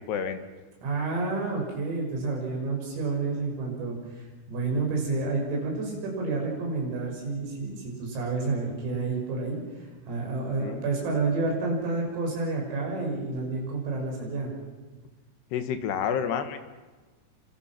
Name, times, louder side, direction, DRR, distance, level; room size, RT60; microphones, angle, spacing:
voice 1, 0.1-0.4 10.6-10.8 15.5-16.6, left 8 dB, 65° left, 8 dB, 3.2 m, -29 dB
voice 2, 0.8-14.5, right 3 dB, 85° right, 0 dB, 9.2 m, -30 dB
28.5 x 26.5 x 6.1 m, 1.3 s
omnidirectional pair, 5.9 m